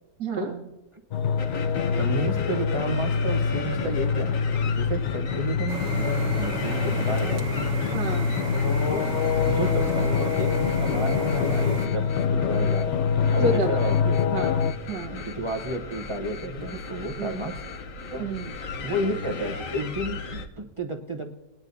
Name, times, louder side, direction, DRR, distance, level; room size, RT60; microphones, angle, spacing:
voice 1, 0.2-0.6 7.9-8.5 13.4-13.9 14.3-15.3 17.2-17.4 18.2-18.5, right 3 dB, 75° right, -2 dB, 1.7 m, -30 dB
sound 1, 1.1-14.7, left 6 dB, 80° left, 0.6 m, -25 dB
sound 2, 1.4-20.5, left 4 dB, 55° left, 1.2 m, -36 dB
voice 2, 2.0-7.7 8.9-9.0 9.4-14.2 15.1-17.6 18.1-18.3 18.8-21.3, right 1 dB, 25° right, 3 dB, 0.6 m, -32 dB
sound 3, 5.7-11.9, right 2 dB, 50° right, 1.5 m, -33 dB
21.0 x 10.5 x 2.7 m, 1.1 s
omnidirectional pair, 1.8 m